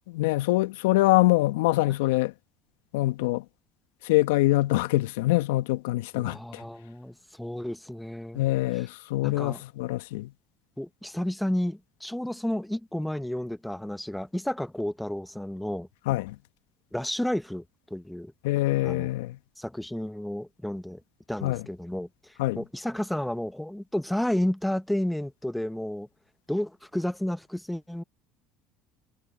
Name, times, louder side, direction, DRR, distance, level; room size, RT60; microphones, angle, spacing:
voice 1, 0.1-2.3 2.9-3.4 4.0-6.6 8.3-10.3 16.1-16.4 18.4-19.4 21.4-21.6 22.4-22.6, left 18 dB, 80° left, 1.4 m, -24 dB
voice 2, 6.1-8.4 9.2-9.6 10.8-15.9 16.9-17.6 17.9-18.3 18.8-19.1 19.6-21.0 21.3-22.1 22.6-26.1 26.5-28.0, left 1 dB, 5° left, 1.0 m, -31 dB
hypercardioid pair, 70°, 0 cm